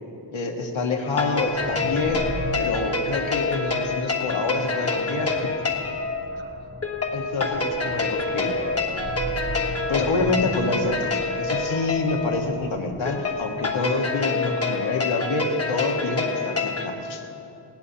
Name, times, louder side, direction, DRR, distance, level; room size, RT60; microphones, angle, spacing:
voice 1, 0.3-2.3 2.6-5.5 7.1-8.5 9.9-11.1 11.4-17.2, left 3 dB, 65° left, 2 dB, 1.6 m, -27 dB
sound 1, 1.0-16.9, left 3 dB, 30° left, 1.2 m, -27 dB
sound 2, 1.3-13.8, right 1 dB, 20° right, 0.7 m, -37 dB
19.0 x 17.5 x 2.8 m, 2.7 s
wide cardioid pair, 140°, 50 cm